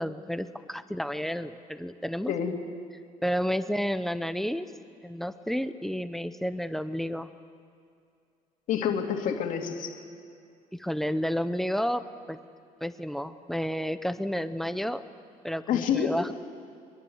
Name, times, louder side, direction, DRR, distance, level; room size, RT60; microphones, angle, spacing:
voice 1, 0.0-2.3 3.2-4.7 5.0-7.3 10.7-12.4 12.8-15.0 15.4-16.3, equal, ahead, 11 dB, 0.6 m, -31 dB
voice 2, 8.7-10.0 15.7-16.1, left 8 dB, 65° left, 3 dB, 2.4 m, -28 dB
23.5 x 21.5 x 7.9 m, 2.4 s
cardioid pair, 170°, 14 cm